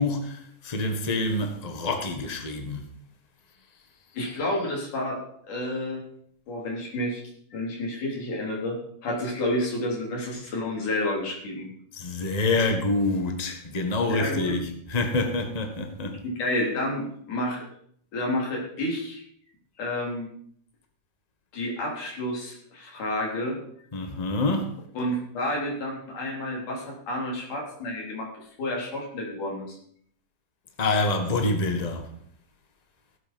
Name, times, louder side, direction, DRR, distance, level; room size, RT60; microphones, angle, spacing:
voice 1, 0.0-2.9 11.9-16.2 23.9-24.7 30.8-32.1, left 2 dB, 30° left, 0.7 m, -27 dB
voice 2, 4.1-5.2 5.5-6.0 6.5-7.2 7.5-8.8 9.0-11.7 14.1-14.5 16.2-17.6 18.1-19.2 19.8-20.3 21.5-23.6 24.9-28.3 28.6-29.8, left 1 dB, 85° left, 5.0 m, -30 dB
16.0 x 8.1 x 5.3 m
omnidirectional pair, 3.5 m